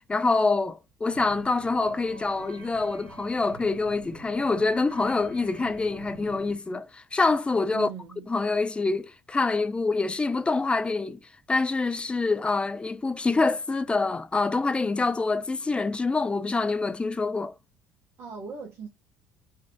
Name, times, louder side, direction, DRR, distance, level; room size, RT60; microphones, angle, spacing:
voice 1, 0.0-7.9 8.3-11.2 11.5-17.5, left 3 dB, 20° left, 0.4 m, -26 dB
sound 1, 1.1-6.6, right 3 dB, 90° right, 1.2 m, -47 dB
voice 2, 7.7-8.3 18.2-18.9, right 6 dB, 50° right, 0.9 m, -38 dB
4.0 x 2.4 x 2.3 m
hypercardioid pair, 60°, 6 cm